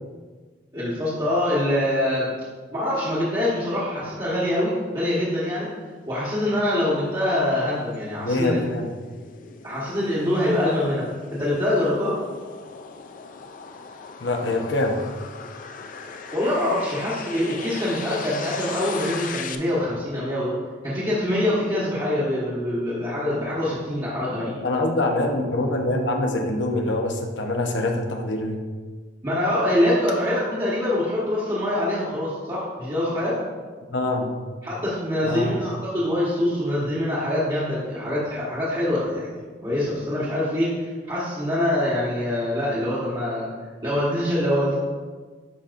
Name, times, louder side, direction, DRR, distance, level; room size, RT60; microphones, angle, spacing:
voice 1, 0.7-2.3 2.7-5.7 6.1-8.6 9.6-12.2 16.3-20.5 20.8-24.5 29.2-33.4 34.6-39.3 39.6-43.5 43.8-44.7, left 1 dB, 25° right, -9 dB, 1.3 m, -24 dB
sound 1, 6.4-19.6, left 5 dB, 45° left, 0.4 m, -39 dB
voice 2, 8.2-8.9 14.2-15.0 24.4-28.6 33.9-34.3 35.2-35.6, left 2 dB, 65° left, 3 dB, 0.9 m, -24 dB
10.0 x 5.2 x 2.6 m, 1.4 s
head